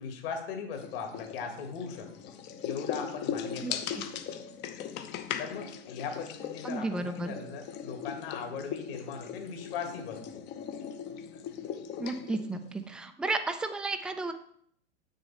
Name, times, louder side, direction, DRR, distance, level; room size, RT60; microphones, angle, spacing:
voice 1, 0.0-2.1 2.6-4.0 5.4-10.4, left 6 dB, 55° left, 4 dB, 2.1 m, -39 dB
sound 1, 0.7-12.9, left 8 dB, 30° left, 0.7 m, -39 dB
voice 2, 6.6-7.3 12.0-14.3, right 3 dB, 5° right, 8 dB, 0.3 m, -33 dB
7.8 x 6.5 x 4.2 m, 0.64 s
hypercardioid pair, 110°, 35 cm